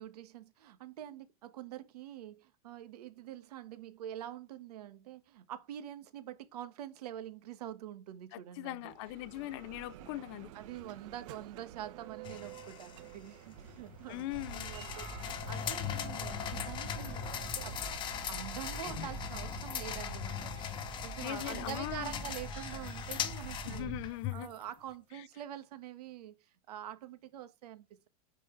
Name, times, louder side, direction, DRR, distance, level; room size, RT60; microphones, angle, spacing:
voice 1, 0.0-8.9 10.5-14.3 14.5-24.0 24.3-28.1, right 11 dB, 80° right, 1.5 m, -46 dB
voice 2, 8.3-10.5 14.1-14.7 21.2-22.1 23.7-24.5 25.1-25.3, left 17 dB, 45° left, 0.5 m, -40 dB
Bell, 8.6-20.4, right 11 dB, 55° right, 1.0 m, -52 dB
sound 1, 12.2-24.6, left 10 dB, 25° left, 0.9 m, -40 dB
sound 2, 14.3-24.1, right 3 dB, 20° right, 1.9 m, -45 dB
10.5 x 4.5 x 3.3 m
supercardioid pair, 160°, 20 cm